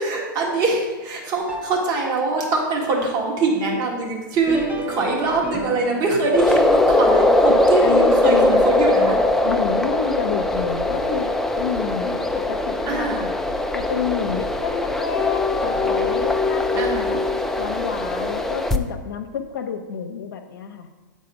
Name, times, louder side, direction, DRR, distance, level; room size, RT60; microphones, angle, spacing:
voice 1, 0.0-4.6 4.9-9.2 12.9-13.2 16.7-17.2, right 3 dB, 40° right, -1 dB, 1.8 m, -23 dB
sound 1, 1.4-2.5 4.3-8.7 9.2-9.3 10.1-10.2 11.0-11.1, right 1 dB, 15° right, 0.8 m, -35 dB
sound 2, 6.3-18.8, left 2 dB, 5° left, 0.3 m, -21 dB
voice 2, 7.5-8.6 9.4-13.3 13.7-17.2 17.6-20.9, left 7 dB, 80° left, 4 dB, 0.8 m, -29 dB
8.5 x 4.1 x 5.0 m, 1.2 s
hypercardioid pair, 120°, 11 cm